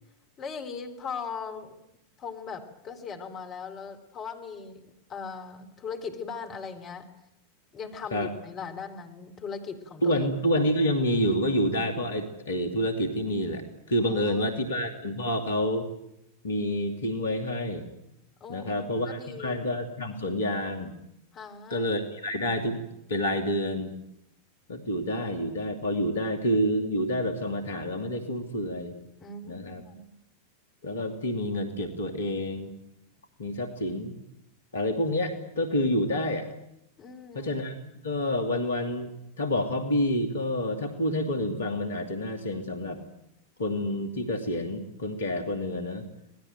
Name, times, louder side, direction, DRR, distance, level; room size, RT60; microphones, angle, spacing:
voice 1, 0.4-1.8 2.2-4.8 5.1-7.1 7.7-10.2 14.1-14.6 18.4-19.6 21.3-21.9 29.2-30.2 37.0-37.5, left 5 dB, 30° left, 5 dB, 3.8 m, -39 dB
voice 2, 10.0-13.6 13.9-15.9 16.4-17.9 18.5-20.9 21.7-23.9 24.7-29.0 29.4-29.8 30.8-32.7 33.4-34.1 34.7-36.5 37.3-39.1 39.4-43.0 43.6-46.0, left 1 dB, 70° left, 5 dB, 2.8 m, -28 dB
26.0 x 19.0 x 9.2 m, 0.82 s
figure-of-eight pair, 90°, 0 cm